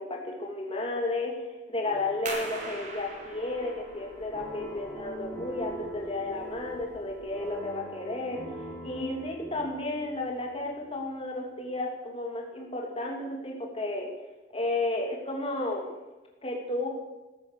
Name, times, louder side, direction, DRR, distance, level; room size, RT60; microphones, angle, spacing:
voice 1, 0.0-8.4 8.8-14.1 14.5-15.9 16.4-16.9, left 2 dB, 30° left, 0 dB, 2.9 m, -33 dB
sound 1, 1.8-10.9, right 1 dB, 15° left, 3.5 m, -43 dB
sound 2, 2.3-7.6, right 2 dB, 45° right, 4.4 m, -43 dB
15.5 x 13.5 x 6.6 m, 1.1 s
head